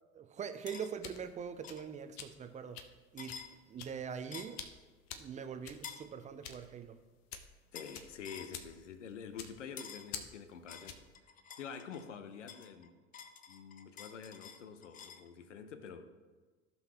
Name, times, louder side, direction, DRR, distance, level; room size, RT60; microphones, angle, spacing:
voice 1, 0.1-2.8 3.1-3.4 3.7-4.6 5.1-7.0, right 7 dB, 20° right, 0.6 m, -43 dB
sound 1, 0.7-11.2, left 8 dB, 45° left, 0.9 m, -50 dB
sound 2, 0.7-0.9 1.6-1.9 3.2-3.5 4.3-4.6 5.8-6.1 7.7-8.0 8.2-8.5 9.8-10.1 10.7-12.1 12.5-15.3, left 7 dB, 20° left, 0.6 m, -49 dB
voice 2, 7.7-11.0 11.6-13.0 13.5-16.1, left 6 dB, 75° left, 0.8 m, -47 dB
15.0 x 5.5 x 3.0 m
figure-of-eight pair, 75°, 37 cm